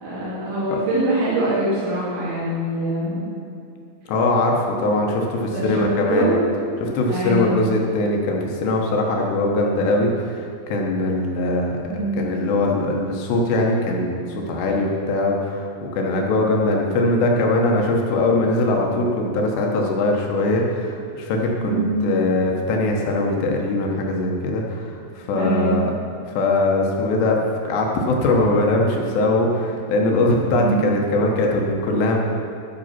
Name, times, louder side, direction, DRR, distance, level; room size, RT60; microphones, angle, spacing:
voice 1, 0.0-3.2 5.5-6.4 7.1-7.7 11.9-12.2 21.6-22.1 25.3-25.8 30.6-30.9, right 1 dB, 85° right, -9 dB, 5.2 m, -23 dB
voice 2, 4.1-6.3 6.8-11.8 12.2-14.2 14.5-15.7 15.9-25.9 26.4-27.4 27.6-32.2, left 2 dB, 75° left, 0 dB, 3.2 m, -21 dB
12.0 x 8.1 x 5.9 m, 2.5 s
omnidirectional pair, 5.3 m